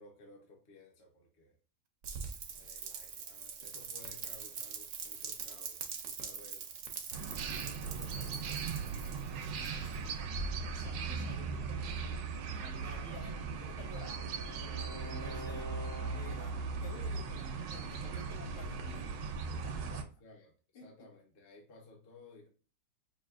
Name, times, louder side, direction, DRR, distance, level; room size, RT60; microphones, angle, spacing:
voice 1, 0.0-1.6 2.5-6.7 7.2-9.6 20.0-22.5, left 2 dB, 40° left, 0 dB, 1.1 m, -58 dB
Rain, 2.0-10.1, right 6 dB, 65° right, 0.8 m, -43 dB
sound 1, 7.1-20.0, right 5 dB, 80° right, 1.3 m, -38 dB
voice 2, 10.7-12.2 12.6-15.8 16.1-20.1 20.7-20.8, left 4 dB, 75° left, -5 dB, 2.5 m, -52 dB
Bowed string instrument, 13.1-16.7, left 2 dB, 30° right, 0.5 m, -48 dB
5.6 x 2.6 x 2.4 m, 0.37 s
omnidirectional pair, 1.9 m